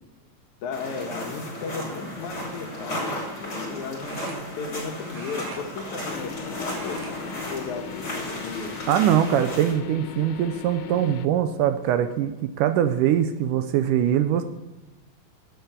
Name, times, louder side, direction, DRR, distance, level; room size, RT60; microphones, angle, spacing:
voice 1, 0.6-8.7, left 4 dB, 65° left, 4 dB, 2.2 m, -35 dB
sound 1, 0.7-9.7, equal, 35° left, 5.2 m, -34 dB
sound 2, 2.2-2.4 4.0-4.8 5.1-6.3 6.6-7.2 7.5-7.7 8.5-9.0 9.6-9.7 11.1-11.2 11.6-11.9, right 2 dB, 65° right, 4.0 m, -43 dB
sound 3, 6.1-11.3, left 10 dB, 85° left, 2.4 m, -38 dB
voice 2, 8.9-14.4, right 10 dB, 80° right, 9 dB, 2.0 m, -22 dB
12.5 x 8.1 x 6.6 m, 1.1 s
omnidirectional pair, 4.1 m